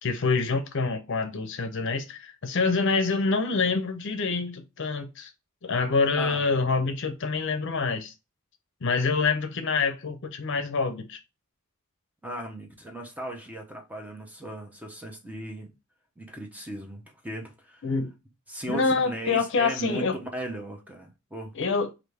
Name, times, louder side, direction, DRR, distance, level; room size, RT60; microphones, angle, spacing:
voice 1, 0.0-5.3 5.6-8.1 8.8-11.2 17.8-18.1 18.7-20.1 21.6-21.9, left 4 dB, 60° left, 0.6 m, -26 dB
voice 2, 6.2-6.5 12.2-15.7 16.2-17.8 18.5-21.5, right 1 dB, 5° right, 0.7 m, -37 dB
5.0 x 2.6 x 3.2 m
head